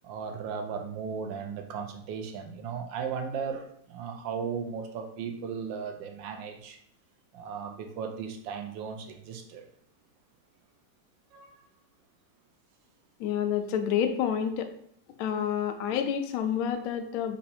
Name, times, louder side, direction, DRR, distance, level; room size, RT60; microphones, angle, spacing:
voice 1, 0.0-6.8 7.3-9.6 11.3-11.5, right 6 dB, 80° right, 5 dB, 1.3 m, -36 dB
voice 2, 13.2-14.7 15.2-17.4, left 8 dB, 90° left, 6 dB, 0.7 m, -28 dB
4.0 x 2.7 x 4.2 m, 0.65 s
omnidirectional pair, 2.1 m